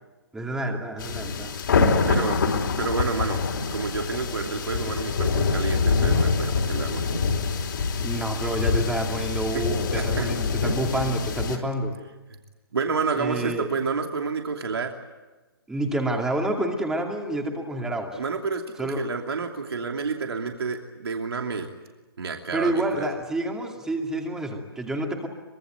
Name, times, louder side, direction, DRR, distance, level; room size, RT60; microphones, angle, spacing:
voice 1, 0.3-1.5 8.0-12.0 13.2-13.7 15.7-18.2 18.8-19.1 22.5-25.3, right 1 dB, 5° right, 2 dB, 2.4 m, -28 dB
sound 1, 1.0-11.6, left 4 dB, 60° left, 4.4 m, -25 dB
voice 2, 2.1-2.4 2.8-3.4 3.7-7.1 9.5-9.6 10.0-10.3 11.5-11.6 12.3-12.4 12.7-14.9 18.1-21.7 22.2-23.1, right 4 dB, 85° right, 3 dB, 2.8 m, -29 dB
24.5 x 23.0 x 9.1 m, 1.2 s
hypercardioid pair, 160°, 13 cm